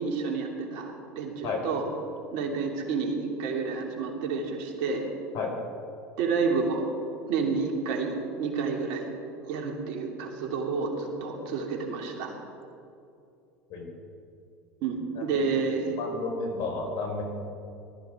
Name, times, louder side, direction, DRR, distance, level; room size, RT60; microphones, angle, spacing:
voice 1, 0.0-1.8 2.3-5.1 6.2-6.9 7.3-9.1 9.5-12.4 14.8-16.0, right 4 dB, 65° right, 1 dB, 3.0 m, -30 dB
voice 2, 16.0-17.2, left 4 dB, 55° left, 2 dB, 4.5 m, -32 dB
19.5 x 13.5 x 5.1 m, 2.6 s
hypercardioid pair, 85°, 7 cm